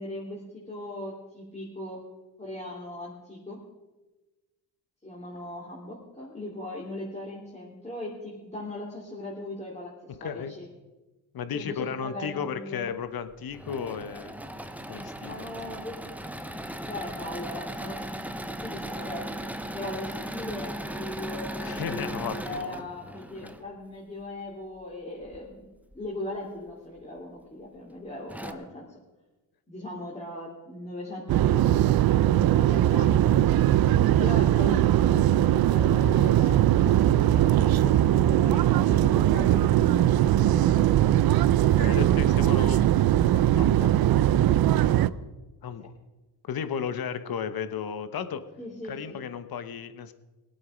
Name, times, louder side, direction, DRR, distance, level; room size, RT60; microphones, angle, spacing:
voice 1, 0.0-2.0 2.4-3.6 5.0-10.7 11.5-12.9 15.2-18.0 18.4-19.4 19.7-28.9 29.7-33.8 34.2-41.1 44.8-45.1 48.6-49.2, left 1 dB, 15° left, -5 dB, 3.2 m, -39 dB
voice 2, 10.1-10.5 11.3-14.4 14.9-15.5 21.6-22.9 23.4-23.5 41.7-42.8 43.3-43.9 45.6-45.9 46.4-48.4 48.9-50.1, left 7 dB, 55° left, 11 dB, 1.2 m, -34 dB
Engine / Mechanisms, 13.3-23.6 25.2-26.0 26.6-26.7 27.0-27.1 27.9-28.0 28.3-28.5, right 1 dB, 5° right, 0.9 m, -37 dB
sound 1, 31.3-45.1, right 12 dB, 55° right, 0.6 m, -21 dB
20.5 x 8.7 x 5.1 m, 1.1 s
cardioid pair, 85°, 44 cm